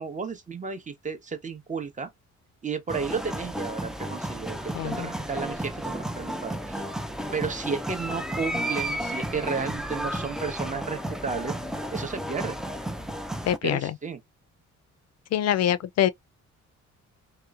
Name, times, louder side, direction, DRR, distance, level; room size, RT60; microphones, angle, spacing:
voice 1, 0.0-2.1 2.6-6.8 7.3-11.6 11.9-12.6 13.5-14.2, right 5 dB, 25° right, 0.9 m, -33 dB
sound 1, 2.9-13.6, right 1 dB, ahead, 0.3 m, -33 dB
voice 2, 4.7-5.1 13.5-13.9 15.3-16.1, left 11 dB, 60° left, 0.4 m, -24 dB
2.9 x 2.0 x 2.4 m
cardioid pair, 90°, 30 cm